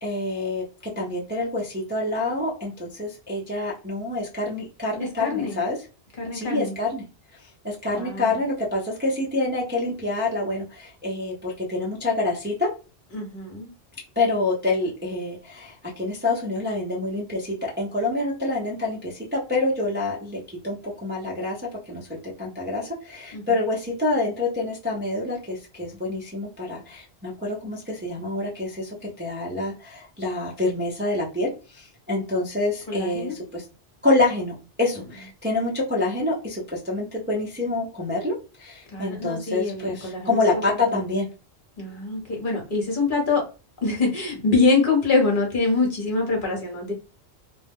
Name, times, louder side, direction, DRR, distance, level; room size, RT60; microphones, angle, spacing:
voice 1, 0.0-5.8 6.3-7.0 7.6-12.7 14.2-21.6 21.9-33.6 34.0-41.3, left 2 dB, 15° right, 0.5 m, -27 dB
voice 2, 5.2-5.6 6.2-6.7 7.9-8.3 13.1-13.7 23.3-23.6 32.9-33.3 38.9-40.6 40.9-41.1 41.8-43.4 43.8-46.9, left 3 dB, 50° left, 1.0 m, -24 dB
2.3 x 2.0 x 3.4 m
omnidirectional pair, 1.1 m